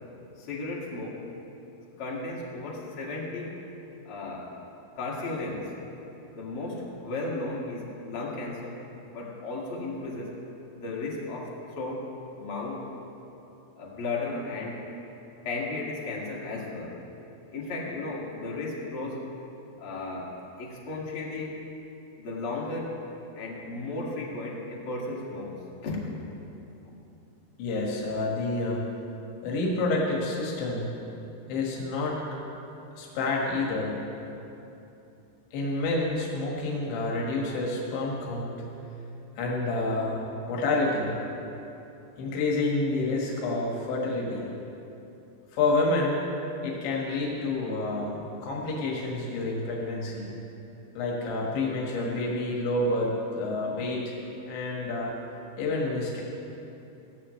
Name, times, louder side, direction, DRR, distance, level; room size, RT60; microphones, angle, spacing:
voice 1, 0.4-1.2 2.0-3.5 4.0-4.6 5.0-5.7 6.3-8.8 9.1-10.3 10.8-12.0 12.4-12.9 13.8-14.9 15.4-17.0 17.5-19.3 19.8-21.6 22.2-23.0 23.3-26.1, left 2 dB, 40° left, -4 dB, 2.2 m, -34 dB
voice 2, 27.6-28.8 29.4-30.9 31.5-32.2 33.0-34.0 35.5-38.6 39.4-40.2 40.5-41.2 42.2-44.5 45.5-46.2 46.6-50.3 51.0-54.1 54.5-55.1 55.6-56.2, left 2 dB, 85° left, -3 dB, 4.1 m, -28 dB
17.0 x 15.5 x 3.2 m, 2.9 s
omnidirectional pair, 5.1 m